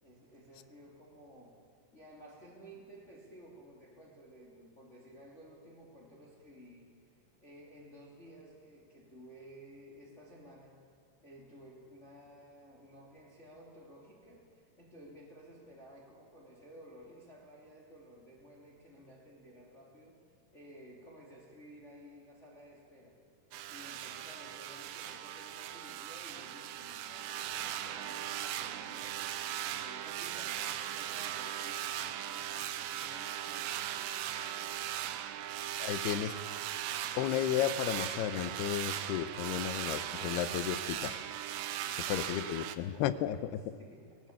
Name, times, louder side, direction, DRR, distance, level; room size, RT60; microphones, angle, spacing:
voice 1, 0.0-1.6 1.9-6.9 7.4-10.8 11.2-20.2 20.5-23.2 23.7-29.1 29.6-33.9 41.8-43.5 43.8-44.1, equal, 20° left, -2 dB, 2.2 m, -55 dB
sound 1, 23.5-42.8, right 11 dB, 85° right, 3.0 m, -38 dB
voice 2, 35.8-36.4 37.2-41.6 42.1-43.6, left 11 dB, 75° left, 14 dB, 2.6 m, -33 dB
19.0 x 18.5 x 8.6 m, 2.4 s
omnidirectional pair, 5.0 m